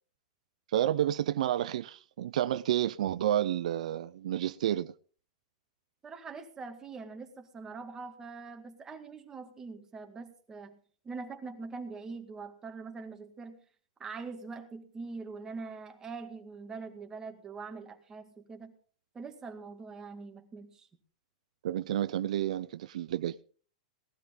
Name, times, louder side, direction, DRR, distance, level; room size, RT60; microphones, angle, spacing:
voice 1, 0.7-4.9 21.6-23.4, right 11 dB, 75° right, 0.5 m, -30 dB
voice 2, 6.0-10.8 11.0-13.6 14.0-18.7 19.1-20.9, right 4 dB, 15° right, 2.0 m, -43 dB
18.0 x 12.5 x 3.8 m
supercardioid pair, 145°, 4 cm